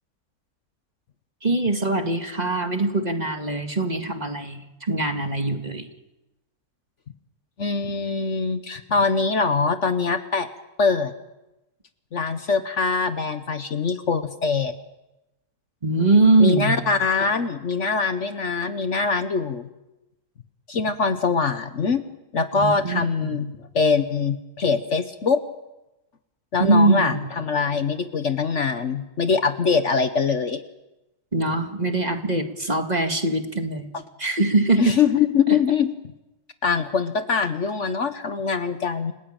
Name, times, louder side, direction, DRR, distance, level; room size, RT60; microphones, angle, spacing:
voice 1, 1.4-5.9 15.8-16.8 22.5-23.4 26.6-27.3 31.3-33.9 34.2-35.0 35.5-35.6, right 2 dB, 25° right, 5 dB, 2.1 m, -22 dB
voice 2, 7.6-10.5 10.8-11.1 12.1-14.7 16.4-19.7 20.7-22.0 22.3-25.4 26.5-30.6 33.9-34.0 34.8-35.9 36.6-39.1, left 5 dB, 55° left, 10 dB, 1.3 m, -23 dB
29.5 x 16.5 x 8.9 m, 0.98 s
omnidirectional pair, 1.6 m